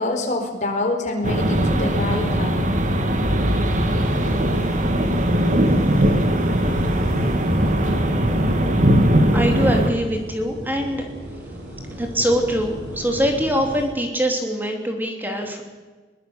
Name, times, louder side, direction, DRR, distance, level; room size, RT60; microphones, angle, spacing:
voice 1, 0.0-2.7, left 2 dB, 45° left, 3 dB, 4.5 m, -25 dB
sound 1, 1.2-9.9, equal, 45° right, 2.4 m, -19 dB
sound 2, 4.0-13.9, equal, 80° right, 6.6 m, -35 dB
voice 2, 9.3-11.1 12.0-15.6, equal, 10° right, 3 dB, 2.9 m, -23 dB
22.5 x 20.0 x 7.1 m, 1.3 s
head